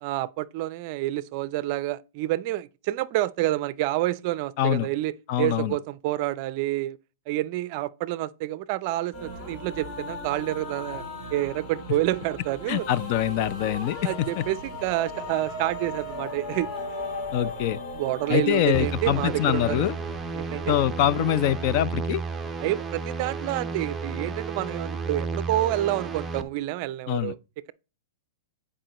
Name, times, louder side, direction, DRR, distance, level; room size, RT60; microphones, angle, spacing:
voice 1, 0.0-7.0 7.3-11.0 11.3-12.9 14.0-16.7 17.9-19.8 20.3-20.8 22.6-27.4, right 15 dB, 45° right, 0.4 m, -28 dB
voice 2, 5.3-5.7 12.7-14.4 17.3-17.8 18.3-20.0 20.7-22.2 27.1-27.3, left 11 dB, 45° left, 0.5 m, -24 dB
sound 1, 9.1-20.7, left 2 dB, 30° left, 2.4 m, -37 dB
sound 2, 18.7-26.4, right 4 dB, 10° right, 0.7 m, -33 dB
10.0 x 4.8 x 3.0 m
hypercardioid pair, 145°, 0 cm